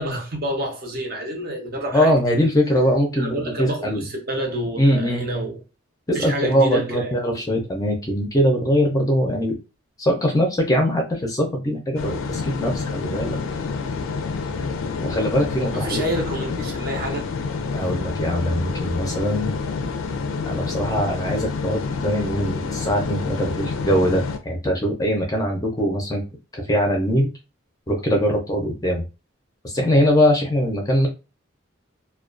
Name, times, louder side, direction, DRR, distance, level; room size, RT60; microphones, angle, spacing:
voice 1, 0.0-2.3 3.2-5.6 6.1-7.4 15.7-17.3 17.8-17.9, right 1 dB, 45° right, 0.6 m, -29 dB
voice 2, 1.9-4.0 4.8-5.2 6.1-9.5 10.0-13.4 15.0-16.0 17.7-19.5 20.5-26.2 26.5-27.3 27.9-29.0 29.6-31.1, equal, 15° left, 0.5 m, -21 dB
sound 1, 12.0-24.4, left 4 dB, 75° left, 0.4 m, -28 dB
2.3 x 2.2 x 2.4 m
head